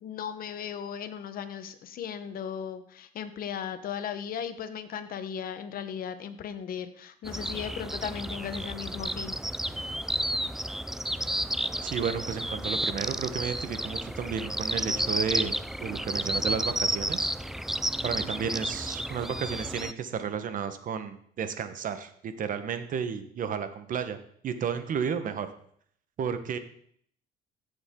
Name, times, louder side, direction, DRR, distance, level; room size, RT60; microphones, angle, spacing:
voice 1, 0.0-9.4, left 8 dB, 60° left, 10 dB, 1.2 m, -36 dB
sound 1, 7.2-19.9, right 1 dB, ahead, 0.4 m, -32 dB
voice 2, 11.8-15.5 15.8-17.3 18.0-24.2 24.4-25.5 26.2-26.6, right 7 dB, 50° right, 10 dB, 1.2 m, -32 dB
15.5 x 7.3 x 3.8 m, 0.64 s
cardioid pair, 110°, 17 cm